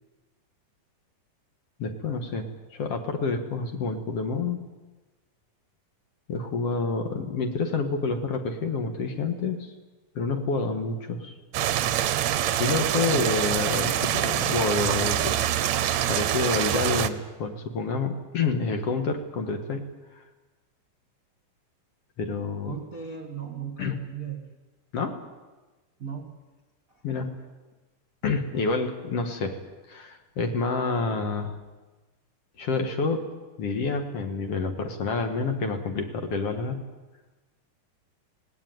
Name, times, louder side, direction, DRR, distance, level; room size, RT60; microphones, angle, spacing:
voice 1, 1.8-4.6 6.3-9.7 10.2-11.3 12.5-15.4 16.1-19.9 22.2-22.7 23.8-24.0 24.9-25.2 27.0-27.4 28.2-29.6 29.9-31.6 32.6-33.3 33.6-36.8, left 4 dB, 55° left, 5 dB, 2.3 m, -28 dB
sound 1, 11.5-17.1, right 11 dB, 70° right, 1.9 m, -25 dB
voice 2, 22.6-24.5 26.0-26.4 26.9-27.0, right 7 dB, 35° right, 3 dB, 1.5 m, -38 dB
18.5 x 18.5 x 9.3 m, 1.2 s
omnidirectional pair, 3.7 m